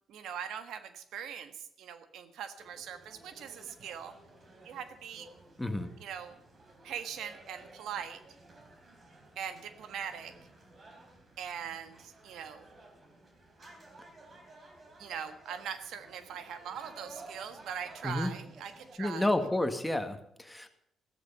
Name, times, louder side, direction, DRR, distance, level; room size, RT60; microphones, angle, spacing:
voice 1, 0.1-4.1 4.6-5.3 6.0-6.4 6.8-8.2 9.4-10.3 11.4-12.6 15.0-19.3, right 8 dB, 80° right, 10 dB, 1.4 m, -41 dB
sound 1, 2.6-19.0, right 2 dB, 40° right, 3.9 m, -55 dB
voice 2, 5.6-5.9 18.0-18.3 19.0-20.7, left 1 dB, 10° left, 7 dB, 1.8 m, -30 dB
15.0 x 13.5 x 5.6 m, 0.72 s
cardioid pair, 90°, 0 cm